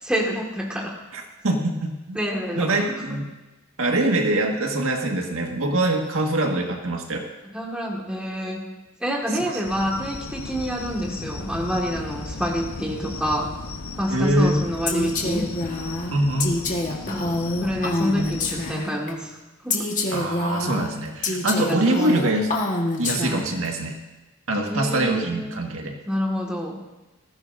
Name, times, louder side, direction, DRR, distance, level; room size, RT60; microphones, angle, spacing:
voice 1, 0.0-1.0 2.2-2.9 7.5-13.5 14.0-15.6 17.1-19.4 19.6-19.9 21.6-22.2 24.7-25.7 26.1-26.8, equal, 5° right, -2 dB, 1.9 m, -28 dB
voice 2, 1.1-2.2 2.6-3.3 3.8-7.2 14.1-14.6 16.1-16.5 20.1-22.5 23.0-24.0 24.5-25.9, right 1 dB, 75° right, 1 dB, 1.8 m, -23 dB
sound 1, 9.6-18.8, left 3 dB, 80° left, 1.0 m, -36 dB
Female speech woman speaking, 14.9-19.1 19.7-23.7, left 2 dB, 35° left, 1.5 m, -26 dB
19.0 x 15.0 x 2.7 m, 1.1 s
head